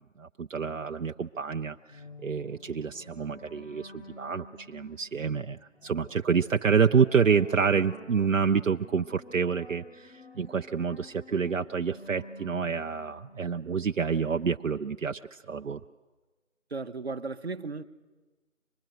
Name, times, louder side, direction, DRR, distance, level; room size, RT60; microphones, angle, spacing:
voice 1, 0.0-15.8, right 6 dB, 70° right, 0.7 m, -28 dB
sound 1, 1.9-14.4, left 1 dB, 45° left, 0.7 m, -50 dB
voice 2, 16.7-17.9, right 4 dB, 50° right, 1.0 m, -36 dB
24.5 x 20.5 x 9.1 m
figure-of-eight pair, 180°, 40 cm